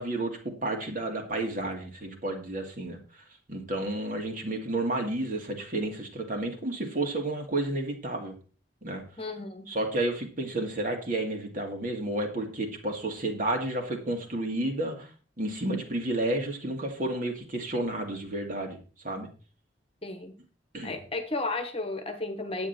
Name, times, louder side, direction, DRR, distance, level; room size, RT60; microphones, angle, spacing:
voice 1, 0.0-3.0 3.5-8.3 8.8-9.0 9.7-15.1 15.4-18.8 19.0-19.3 20.7-21.0, right 1 dB, 45° right, 2 dB, 2.4 m, -31 dB
voice 2, 9.2-9.7 20.0-20.4 20.8-22.7, left 2 dB, 30° left, 7 dB, 1.3 m, -33 dB
10.0 x 8.9 x 4.4 m, 0.37 s
head